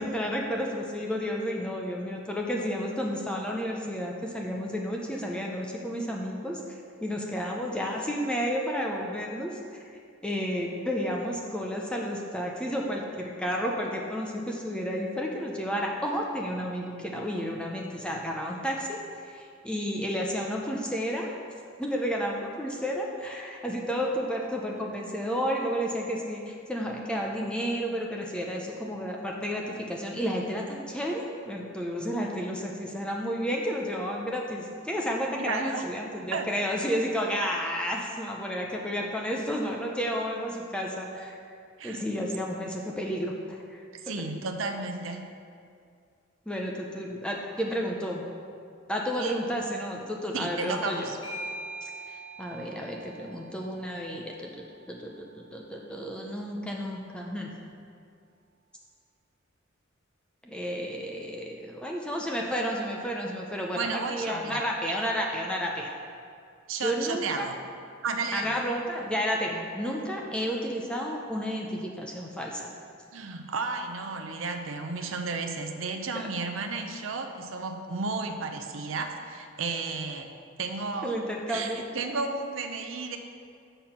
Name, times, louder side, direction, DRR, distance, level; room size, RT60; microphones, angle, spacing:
voice 1, 0.0-9.6 10.2-19.0 19.2-21.3 21.8-41.4 41.8-43.8 46.5-48.2 48.9-51.1 51.8-54.5 54.9-57.5 60.4-65.9 66.8-67.5 68.3-72.7 76.2-76.3 81.0-81.8, equal, 5° left, -1 dB, 0.6 m, -31 dB
voice 2, 35.4-35.9 36.3-36.5 41.8-42.1 44.0-45.3 49.2-49.3 50.3-51.2 63.7-64.6 66.7-67.6 68.0-68.5 73.1-80.3 80.6-81.2 81.5-83.2, right 4 dB, 75° right, 5 dB, 0.6 m, -33 dB
Bell / Doorbell, 50.6-55.7, right 1 dB, 70° left, 2.0 m, -43 dB
6.7 x 6.1 x 5.7 m, 2.3 s
head